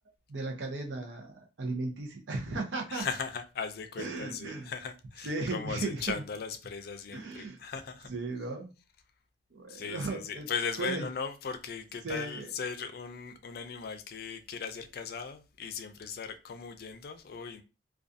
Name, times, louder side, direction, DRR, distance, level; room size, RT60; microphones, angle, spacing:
voice 1, 0.3-3.1 4.0-4.7 5.2-6.2 7.1-7.6 8.1-8.7 9.5-10.5 10.8-11.1 12.0-12.5, right 3 dB, 90° right, 0.6 m, -36 dB
voice 2, 2.9-8.1 9.7-17.6, left 6 dB, 55° left, 0.4 m, -38 dB
2.4 x 2.2 x 2.5 m
head